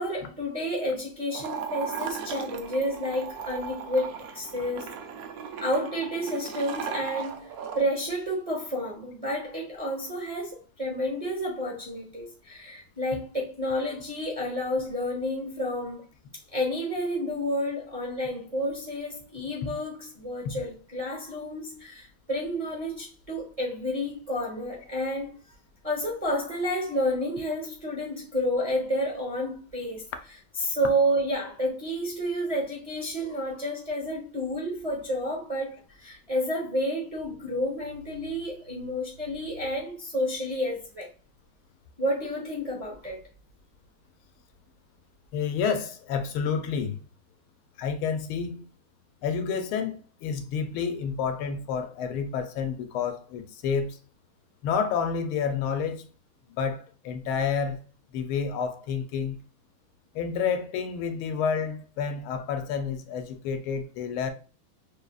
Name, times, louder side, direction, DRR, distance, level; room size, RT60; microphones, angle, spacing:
voice 1, 0.0-4.9 5.6-16.1 16.5-25.3 25.8-30.0 30.6-41.1 42.0-43.2, equal, 30° right, 0.7 m, -30 dB
sound 1, 1.3-7.8, right 7 dB, 85° right, 0.7 m, -37 dB
voice 2, 45.3-47.0 47.8-48.6 49.2-54.0 54.6-56.0 56.6-57.8 58.1-59.4 60.1-64.3, left 6 dB, 90° left, 1.6 m, -29 dB
6.2 x 2.7 x 2.3 m
omnidirectional pair, 2.2 m